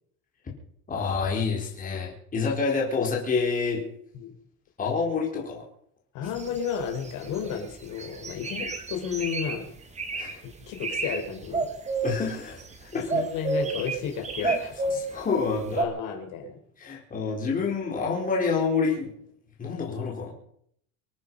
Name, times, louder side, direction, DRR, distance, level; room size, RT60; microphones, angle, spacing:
voice 1, 0.9-3.8 4.8-5.6 10.1-10.4 12.0-13.1 14.4-14.5 14.9-15.8 16.8-19.1 19.6-20.3, left 5 dB, 20° left, -2 dB, 4.5 m, -28 dB
voice 2, 6.1-9.7 10.7-11.7 13.1-15.0 15.8-16.6, left 6 dB, 50° left, 2 dB, 4.9 m, -32 dB
sound 1, 6.3-7.6 8.0-9.6 10.0-10.3 10.7-11.2 11.4-12.7 13.1-15.2 15.8-15.9, right 3 dB, 15° right, 2.2 m, -30 dB
26.5 x 9.7 x 5.6 m, 0.69 s
cardioid pair, 160°, 39 cm